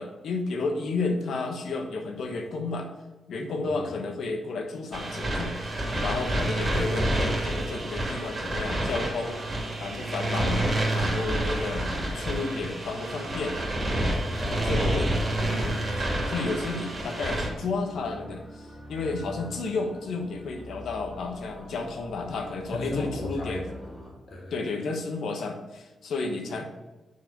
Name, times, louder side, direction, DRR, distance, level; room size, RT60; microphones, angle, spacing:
voice 1, 0.0-2.9 3.3-9.4 9.8-11.9 12.1-13.6 14.6-15.1 15.4-23.6 24.5-26.6, left 3 dB, 80° left, 4 dB, 1.2 m, -32 dB
sound 1, 4.9-17.5, right 1 dB, 35° right, 2.3 m, -28 dB
sound 2, 13.1-24.1, left 1 dB, 15° left, 1.8 m, -42 dB
voice 2, 14.3-15.2 22.7-24.8, left 1 dB, 40° left, -2 dB, 2.3 m, -36 dB
6.4 x 4.7 x 5.4 m, 1.1 s
cardioid pair, 95°, 0 cm